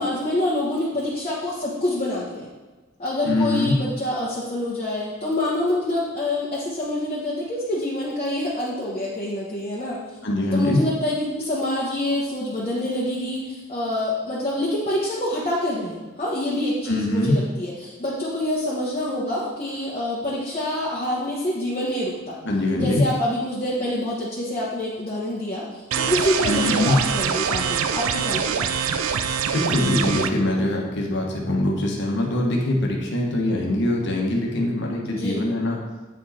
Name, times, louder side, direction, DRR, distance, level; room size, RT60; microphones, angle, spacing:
voice 1, 0.0-2.5 3.0-10.0 10.5-22.4 22.8-28.7 35.1-35.4, left 1 dB, 30° left, -7 dB, 1.2 m, -26 dB
voice 2, 3.2-3.7 10.2-10.8 16.9-17.4 22.4-23.0 26.5-27.0 29.5-35.8, left 1 dB, 60° left, 0 dB, 1.4 m, -23 dB
sound 1, 25.9-30.3, right 7 dB, 85° right, 0.5 m, -24 dB
8.6 x 5.0 x 4.2 m, 1.3 s
head